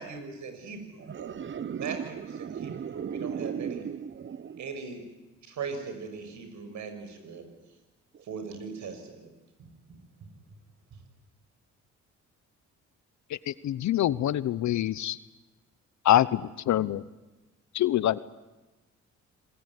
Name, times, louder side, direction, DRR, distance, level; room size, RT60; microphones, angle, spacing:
voice 1, 0.0-0.8 1.2-1.3 1.7-3.9 4.6-5.0 5.5-7.5 8.2-9.3 9.6-10.3, right 5 dB, 70° right, 6.2 m, -40 dB
voice 2, 1.1-4.6, right 7 dB, 40° right, 1.0 m, -36 dB
voice 3, 13.3-15.2 16.0-17.0 17.7-18.2, left 12 dB, 70° left, 0.9 m, -25 dB
27.5 x 20.5 x 9.7 m
cardioid pair, 90°, 30 cm